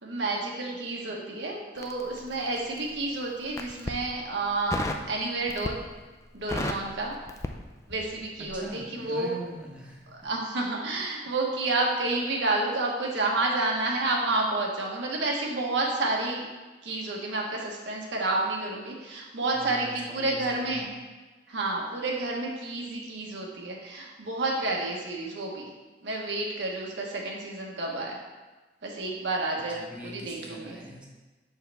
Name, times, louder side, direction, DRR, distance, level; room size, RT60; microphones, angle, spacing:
voice 1, 0.0-5.8 6.3-7.1 7.9-9.3 10.2-16.5 16.8-20.9 21.5-25.7 26.0-28.2 28.8-30.8, right 2 dB, 90° right, -1 dB, 1.1 m, -30 dB
Crackle, 1.8-2.9 3.4-4.0 4.7-5.1 5.5-6.0 6.3-8.2 8.4-8.7, left 2 dB, 15° left, 0.3 m, -33 dB
voice 2, 8.4-10.3 19.5-20.9 29.7-31.1, right 1 dB, 5° right, -3 dB, 0.8 m, -42 dB
6.4 x 4.7 x 3.4 m, 1.3 s
head